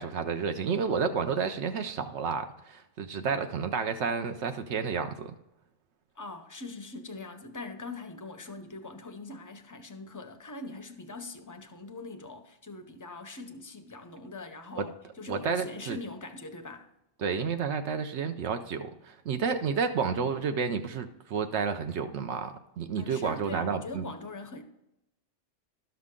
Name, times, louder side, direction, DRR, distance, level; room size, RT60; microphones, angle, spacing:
voice 1, 0.0-5.3 14.8-14.9 15.3-16.0 17.2-24.0, right 6 dB, 70° right, 0.9 m, -31 dB
voice 2, 6.2-16.9 23.0-24.6, left 2 dB, 25° left, 0.5 m, -42 dB
12.0 x 5.9 x 3.7 m
omnidirectional pair, 1.3 m